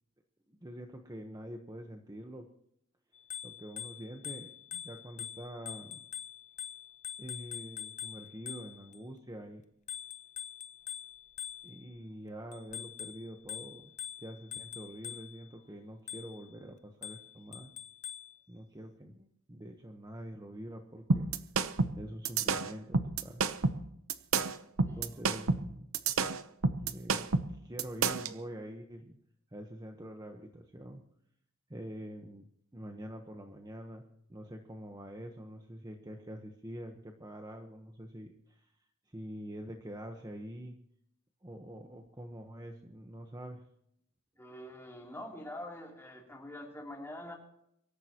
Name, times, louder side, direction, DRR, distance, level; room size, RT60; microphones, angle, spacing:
voice 1, 0.5-2.5 3.4-6.0 7.2-9.6 11.6-13.9 14.2-17.7 18.5-21.3 22.0-23.4 24.9-25.9 26.8-29.2 29.5-31.0 31.7-32.5 32.7-34.0 34.3-38.7 39.1-40.8 41.4-43.7, equal, 20° right, 4 dB, 1.1 m, -45 dB
Bicycle bell, 3.2-9.0 9.9-12.0 12.5-15.5 16.1-16.5 17.0-18.4, left 9 dB, 35° left, 0.6 m, -44 dB
sound 1, 21.1-28.3, right 4 dB, 75° right, 0.9 m, -30 dB
voice 2, 24.8-25.2 44.4-47.4, left 1 dB, 10° left, 0 dB, 3.2 m, -45 dB
24.5 x 13.5 x 3.0 m, 0.74 s
head